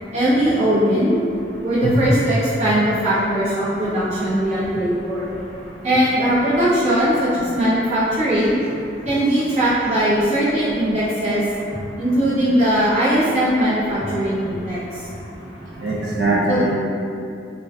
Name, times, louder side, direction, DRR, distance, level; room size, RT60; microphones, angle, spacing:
voice 1, 0.1-1.2 1.6-5.3 5.8-8.6 9.0-11.4 12.0-15.1 16.5-16.6, right 1 dB, 40° right, -12 dB, 0.8 m, -19 dB
voice 2, 15.8-16.7, right 2 dB, 80° right, -7 dB, 0.4 m, -21 dB
2.3 x 2.2 x 2.4 m, 2.5 s
head